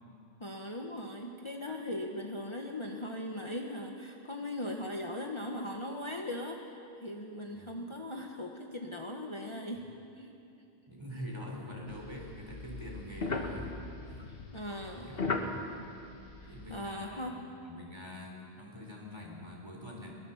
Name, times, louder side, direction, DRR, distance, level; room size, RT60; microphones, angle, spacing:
voice 1, 0.4-9.8 10.2-10.3 14.3-15.5 16.4-17.4, left 1 dB, 30° left, 1 dB, 1.3 m, -39 dB
voice 2, 7.5-7.9 10.9-13.7 14.0-14.3 15.0-15.7 16.5-17.3 17.6-20.1, left 1 dB, 25° right, -1 dB, 4.1 m, -45 dB
sound 1, 11.9-16.9, left 3 dB, 65° left, 1.9 m, -38 dB
22.0 x 21.0 x 7.3 m, 2.6 s
omnidirectional pair, 1.0 m